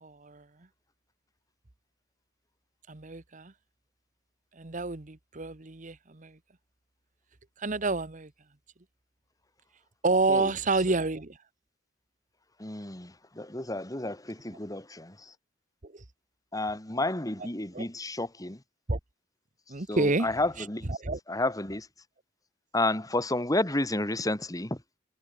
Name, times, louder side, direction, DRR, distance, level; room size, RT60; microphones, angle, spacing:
voice 1, 0.0-0.4 2.9-3.5 4.6-6.3 7.6-8.3 10.0-11.4 15.8-15.9 17.7-17.9 18.9-19.0 19.7-20.3 20.9-21.2, right 3 dB, 45° right, 1.2 m, -29 dB
voice 2, 12.6-15.1 16.5-18.6 19.9-20.9 21.3-21.9 22.7-24.8, left 2 dB, 20° left, 2.4 m, -31 dB
head